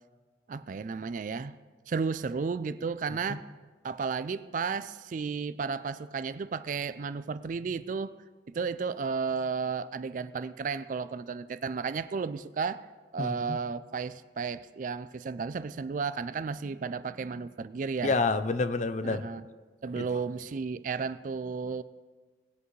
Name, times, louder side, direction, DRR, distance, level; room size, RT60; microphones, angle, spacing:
voice 1, 0.5-1.5 1.9-3.5 3.8-8.1 8.5-12.9 13.1-18.2 19.0-19.4 19.8-21.8, right 5 dB, 45° right, 15 dB, 0.3 m, -33 dB
voice 2, 13.2-13.6 18.0-19.2 20.0-20.1, left 3 dB, 40° left, 12 dB, 0.5 m, -28 dB
19.5 x 8.1 x 3.2 m, 1.4 s
head